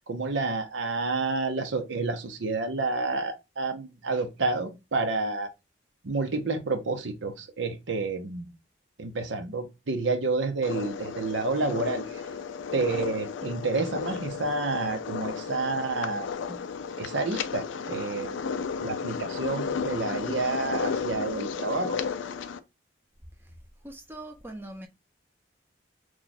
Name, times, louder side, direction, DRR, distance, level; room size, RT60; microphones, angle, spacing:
voice 1, 0.1-5.5 6.0-8.5 9.0-12.2 12.7-16.6 17.0-18.4 18.8-22.0, right 3 dB, 85° right, 0.7 m, -29 dB
sound 1, 10.6-22.6, left 6 dB, 85° left, 0.4 m, -33 dB
voice 2, 23.8-24.9, right 1 dB, 10° right, 0.5 m, -41 dB
3.1 x 2.3 x 4.0 m
head